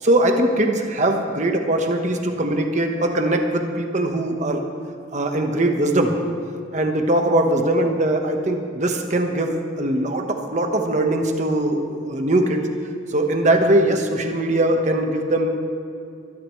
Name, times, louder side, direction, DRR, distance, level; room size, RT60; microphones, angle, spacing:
voice 1, 0.0-4.6 5.1-6.2 6.7-12.7 13.1-15.5, right 1 dB, 40° right, 4 dB, 1.2 m, -21 dB
24.0 x 12.5 x 3.2 m, 2.6 s
head